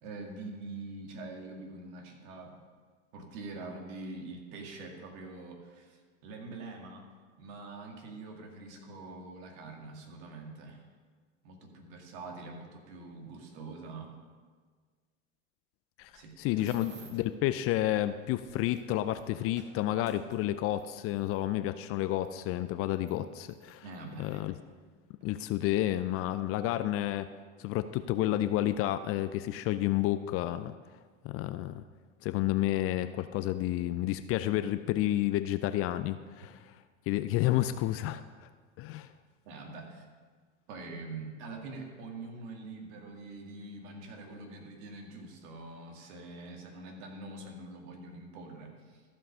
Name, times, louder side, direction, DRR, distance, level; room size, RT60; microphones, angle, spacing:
voice 1, 0.0-2.6 3.1-7.1 7.4-10.8 11.4-14.1 16.1-17.1 23.8-24.4 39.5-40.1 40.7-49.0, right 3 dB, 60° right, 2 dB, 2.2 m, -44 dB
sound 1, 16.0-17.3 18.1-21.4 22.2-22.3 22.9-24.4 25.2-25.3 25.7-26.0, right 4 dB, 30° right, 1.6 m, -58 dB
voice 2, 16.4-23.8 24.2-24.5 25.2-27.3 27.6-30.7 31.2-31.8 32.2-36.7 37.1-38.5 38.8-39.1, left 14 dB, 40° left, 12 dB, 0.4 m, -30 dB
14.5 x 5.3 x 5.4 m, 1.5 s
hypercardioid pair, 100°, 38 cm